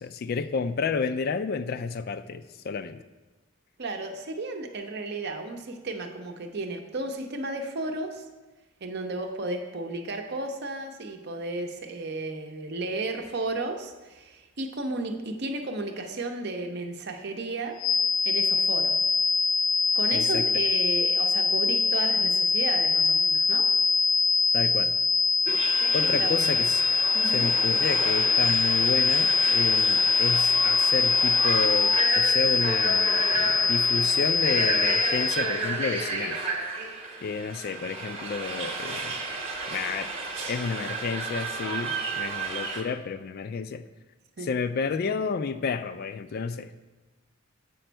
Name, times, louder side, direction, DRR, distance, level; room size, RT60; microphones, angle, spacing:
voice 1, 0.0-3.0 20.1-20.5 24.5-24.9 25.9-26.8 27.3-36.4 37.2-39.2 39.7-40.1 40.5-43.8 44.4-46.7, left 5 dB, 50° left, 11 dB, 0.3 m, -31 dB
voice 2, 3.8-8.2 8.8-17.8 18.2-19.1 19.9-23.7 26.0-26.5 27.1-27.5 44.4-44.5, right 2 dB, 55° right, 5 dB, 0.7 m, -33 dB
sound 1, 17.8-35.5, left 4 dB, 90° left, 0.9 m, -23 dB
sound 2, 25.5-42.8, right 3 dB, 30° right, 0.9 m, -32 dB
7.7 x 5.1 x 4.5 m, 1.2 s
head